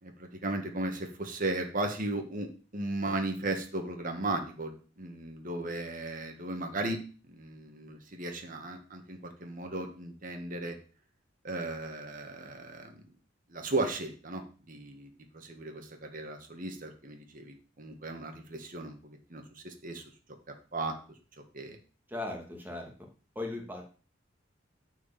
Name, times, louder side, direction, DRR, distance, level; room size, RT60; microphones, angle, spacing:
voice 1, 0.0-7.0 7.3-10.8 11.4-13.1 13.5-20.0 20.7-20.9 21.5-21.8, right 2 dB, 45° right, 4 dB, 1.8 m, -36 dB
voice 2, 22.1-22.9 23.3-23.8, left 2 dB, 10° right, 1 dB, 2.4 m, -37 dB
9.5 x 5.0 x 7.5 m, 0.38 s
head